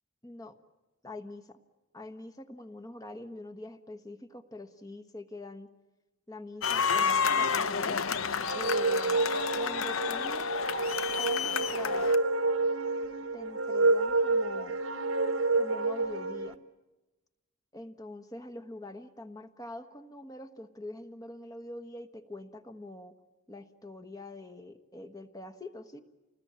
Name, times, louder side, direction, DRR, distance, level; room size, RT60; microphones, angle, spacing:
voice 1, 0.2-0.5 1.0-1.6 1.9-5.7 6.3-8.0 8.5-9.2 9.5-10.5 11.2-12.1 13.3-14.8 15.5-16.6 17.7-23.2 23.5-26.0, left 2 dB, 15° left, 6 dB, 1.3 m, -44 dB
sound 1, 6.6-12.2, left 6 dB, 75° left, 0.8 m, -30 dB
sound 2, 8.4-16.5, right 3 dB, 80° right, 1.2 m, -29 dB
29.0 x 20.0 x 8.7 m, 1.1 s
head